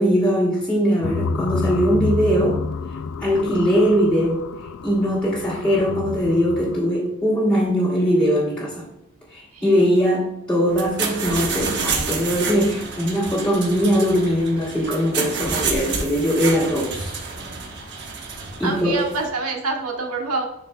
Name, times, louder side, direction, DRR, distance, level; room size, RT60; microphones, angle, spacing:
voice 1, 0.0-2.6 3.2-4.4 4.8-8.8 9.3-17.2 18.6-19.0, equal, 5° left, -8 dB, 1.2 m, -21 dB
sound 1, 1.0-6.8, left 4 dB, 70° left, 0.3 m, -29 dB
sound 2, 10.7-19.3, right 4 dB, 50° right, 1.0 m, -29 dB
voice 2, 18.6-20.5, right 3 dB, 85° right, 1 dB, 1.2 m, -26 dB
10.0 x 4.1 x 2.2 m, 0.86 s
head